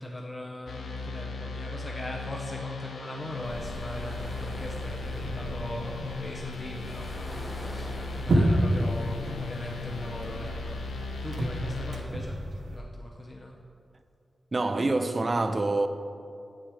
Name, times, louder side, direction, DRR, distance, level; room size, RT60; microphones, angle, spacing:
voice 1, 0.0-13.6, left 1 dB, 25° left, 0.7 m, -39 dB
sound 1, 0.7-12.0, left 4 dB, 80° left, 0.7 m, -37 dB
sound 2, 3.1-12.3, equal, 10° left, 1.1 m, -48 dB
sound 3, 3.4-12.8, right 1 dB, 75° right, 1.0 m, -32 dB
voice 2, 14.5-15.9, right 2 dB, 35° right, 0.5 m, -26 dB
8.6 x 6.3 x 4.9 m
wide cardioid pair, 115°, 0 cm